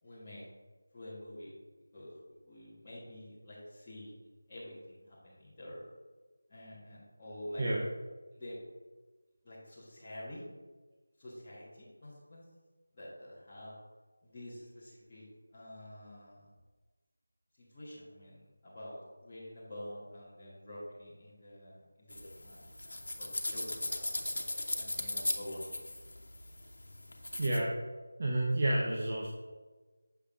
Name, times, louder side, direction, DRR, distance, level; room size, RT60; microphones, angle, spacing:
voice 1, 0.0-0.4 0.9-1.6 1.9-4.1 4.5-5.8 6.5-7.6 8.3-8.6 9.4-10.4 11.2-12.4 12.9-13.7 14.2-15.2 15.5-16.5 17.6-22.2 22.4-24.3 24.7-25.8, left 1 dB, 15° left, -13 dB, 1.1 m, -48 dB
sound 1, 22.1-27.6, left 1 dB, 80° left, 1.1 m, -38 dB
voice 2, 27.4-27.7 28.2-29.3, right 1 dB, 25° right, -3 dB, 0.6 m, -30 dB
7.2 x 6.8 x 2.4 m, 1.3 s
figure-of-eight pair, 180°, 0 cm